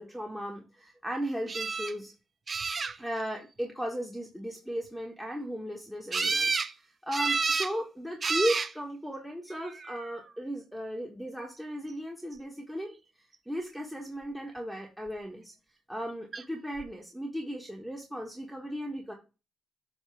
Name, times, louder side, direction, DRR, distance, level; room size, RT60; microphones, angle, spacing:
voice 1, 0.0-2.1 3.0-12.9 13.5-15.5 15.9-19.1, equal, 5° right, 0 dB, 1.3 m, -36 dB
sound 1, 1.5-1.9 2.5-3.2 6.1-6.7 7.1-7.7 8.2-8.7 9.6-10.1 16.3-16.4 16.8-16.9, right 4 dB, 35° right, 0.6 m, -30 dB
7.8 x 2.9 x 5.8 m, 0.30 s
cardioid pair, 90°, 0 cm